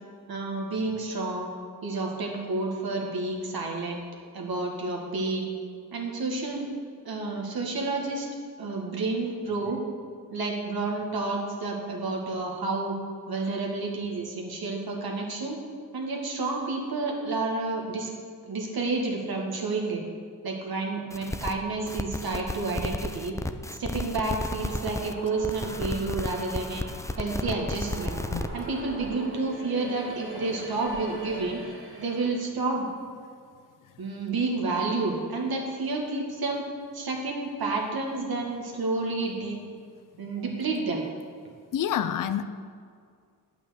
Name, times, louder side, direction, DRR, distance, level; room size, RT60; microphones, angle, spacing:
voice 1, 0.3-1.5 1.8-4.1 4.3-5.5 5.9-6.7 7.1-8.3 8.6-9.8 10.3-13.0 13.3-15.6 15.9-18.1 18.5-20.0 20.4-23.4 23.8-26.8 27.2-28.2 28.5-31.6 32.0-32.9 34.0-36.6 36.9-39.6 40.2-41.0, right 3 dB, 70° right, 0 dB, 2.0 m, -30 dB
sound 1, 21.1-21.5 21.9-25.1 25.4-28.5, left 1 dB, 10° left, 0.6 m, -33 dB
sound 2, 24.3-32.5, right 2 dB, 30° right, 2.7 m, -42 dB
voice 2, 41.7-42.4, left 9 dB, 55° left, 11 dB, 0.6 m, -28 dB
9.1 x 5.9 x 6.9 m, 2.1 s
supercardioid pair, 45°, 38 cm